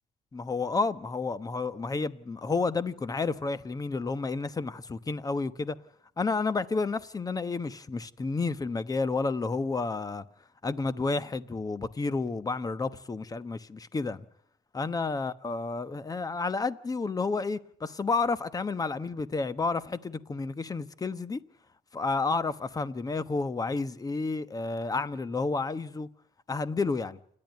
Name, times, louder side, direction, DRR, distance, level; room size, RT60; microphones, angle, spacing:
voice 1, 0.3-5.8 6.2-10.2 10.6-14.2 14.7-21.4 21.9-26.1 26.5-27.2, left 3 dB, 20° left, 1.1 m, -31 dB
28.5 x 11.0 x 9.3 m
cardioid pair, 110°, 17 cm